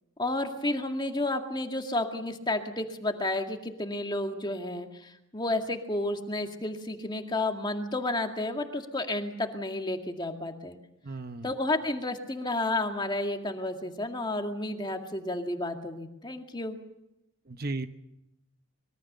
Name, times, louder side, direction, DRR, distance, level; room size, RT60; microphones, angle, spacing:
voice 1, 0.2-10.8 11.4-16.8, left 2 dB, 20° left, 5 dB, 2.0 m, -31 dB
voice 2, 11.0-11.5 17.5-17.9, right 2 dB, 45° right, 9 dB, 1.0 m, -35 dB
25.0 x 22.5 x 6.8 m, 0.86 s
head